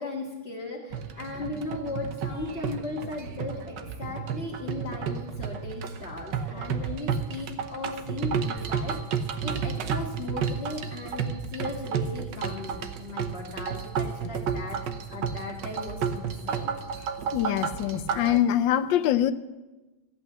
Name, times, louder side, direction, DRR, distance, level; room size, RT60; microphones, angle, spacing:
voice 1, 0.0-9.0 9.4-14.8 15.1-16.7, left 3 dB, 30° left, -3 dB, 1.7 m, -37 dB
sound 1, 0.9-18.4, right 6 dB, 60° right, 1.4 m, -32 dB
voice 2, 17.3-19.3, left 11 dB, 70° left, 13 dB, 1.2 m, -24 dB
14.5 x 8.4 x 7.8 m, 1.1 s
omnidirectional pair, 2.4 m